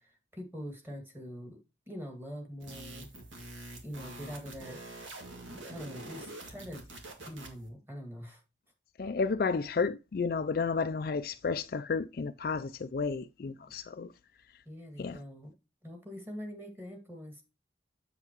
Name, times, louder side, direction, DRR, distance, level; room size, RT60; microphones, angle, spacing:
voice 1, 0.0-1.6 1.9-3.1 3.8-4.8 5.5-6.8 7.2-8.4 14.7-15.5 15.8-17.4, equal, 10° right, 2.1 m, -44 dB
sound 1, 2.6-7.7, right 2 dB, 80° right, 2.3 m, -46 dB
voice 2, 9.0-14.1 15.0-15.2, left 4 dB, 50° left, 0.4 m, -32 dB
7.9 x 7.7 x 3.0 m
head